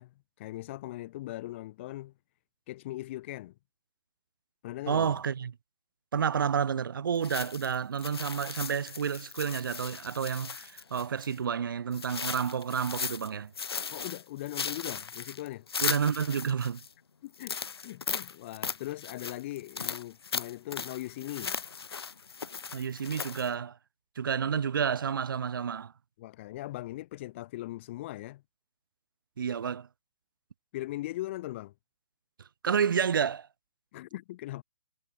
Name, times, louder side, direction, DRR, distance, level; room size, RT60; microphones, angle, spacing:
voice 1, 0.0-2.1 2.7-3.5 4.6-5.2 13.9-15.7 17.2-17.6 17.8-21.6 26.2-28.4 30.7-31.7 33.9-34.6, left 16 dB, 30° left, 5.0 m, -39 dB
voice 2, 4.9-5.5 6.1-13.5 15.8-16.8 22.7-23.8 24.1-25.9 29.4-29.9 32.6-33.5, right 7 dB, 60° right, 3.0 m, -30 dB
sound 1, 7.2-11.4 11.9-13.3 13.5-16.9 17.3-23.5, left 5 dB, 80° left, 1.7 m, -37 dB
hypercardioid pair, 165°, 13 cm